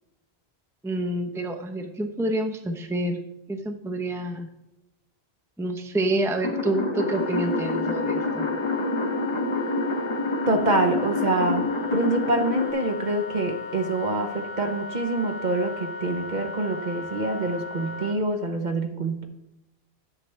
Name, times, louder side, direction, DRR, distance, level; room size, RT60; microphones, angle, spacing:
voice 1, 0.8-3.2 3.5-4.5 5.6-8.5, right 1 dB, 5° right, 4 dB, 0.7 m, -28 dB
sound 1, 6.4-12.7, left 2 dB, 30° left, 0.8 m, -27 dB
Wind instrument woodwind instrument, 6.9-18.2, left 5 dB, 65° left, 0.8 m, -36 dB
voice 2, 10.5-19.2, right 2 dB, 45° right, 5 dB, 0.9 m, -26 dB
10.0 x 7.5 x 3.3 m, 0.88 s
omnidirectional pair, 1.1 m